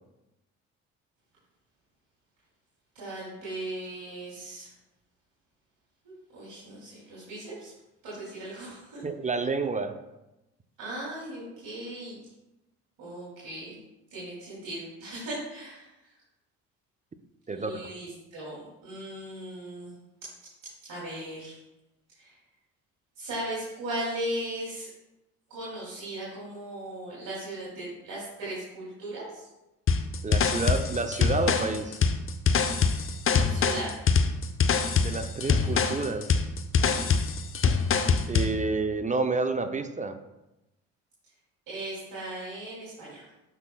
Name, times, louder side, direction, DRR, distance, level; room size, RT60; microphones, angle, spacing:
voice 1, 2.9-4.7 6.3-7.7 8.0-9.0 10.8-12.2 13.0-13.7 14.1-15.9 17.5-19.9 20.8-21.6 22.2-22.4 23.2-24.9 25.5-29.4 33.5-33.9 36.8-37.0 41.7-43.2, right 1 dB, 60° right, -7 dB, 2.8 m, -37 dB
voice 2, 9.0-10.0 17.5-17.7 30.2-32.0 35.0-36.3 38.3-40.2, right 3 dB, 20° right, 8 dB, 0.6 m, -29 dB
sound 1, 29.9-38.6, left 5 dB, 35° left, 0.7 m, -24 dB
12.0 x 5.6 x 2.3 m, 0.96 s
hypercardioid pair, 60°, 37 cm